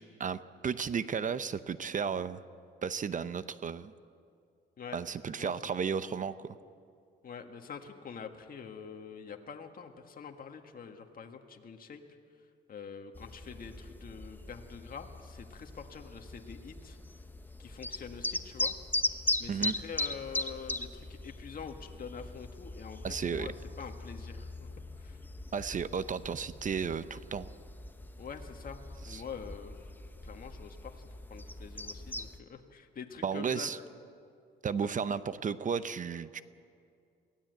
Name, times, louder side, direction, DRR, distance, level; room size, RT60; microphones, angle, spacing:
voice 1, 0.0-2.4 2.8-3.9 4.9-6.5 19.5-19.7 23.0-23.5 25.5-27.5 29.1-29.2 33.2-33.8 34.6-36.4, right 6 dB, 40° right, 14 dB, 0.7 m, -34 dB
voice 2, 7.2-12.0 12.7-17.0 17.6-18.7 19.4-24.7 25.0-25.2 28.2-29.9 30.2-33.8 35.0-35.2, left 6 dB, 45° left, 4 dB, 1.7 m, -46 dB
sound 1, 13.2-32.4, left 2 dB, 10° left, 0.9 m, -39 dB
22.5 x 16.0 x 7.9 m, 2.4 s
cardioid pair, 90°, 20 cm